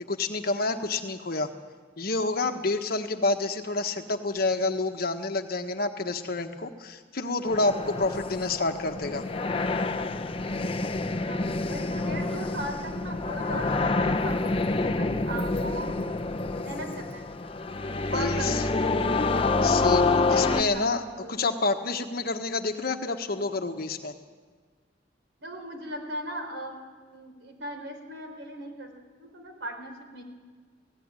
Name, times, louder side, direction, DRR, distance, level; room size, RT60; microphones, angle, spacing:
voice 1, 0.0-1.5 2.0-9.2 17.9-18.6 19.6-21.0 21.3-24.1, left 3 dB, 55° left, 6 dB, 1.3 m, -28 dB
sound 1, 7.5-20.6, left 3 dB, 30° left, 0.9 m, -27 dB
voice 2, 11.2-16.0 16.6-17.3 18.1-18.9 20.5-20.8 21.2-21.3 25.4-26.9 27.1-28.9 29.2-30.2, right 1 dB, 75° right, 4 dB, 4.4 m, -38 dB
17.5 x 15.5 x 9.7 m, 1.5 s
head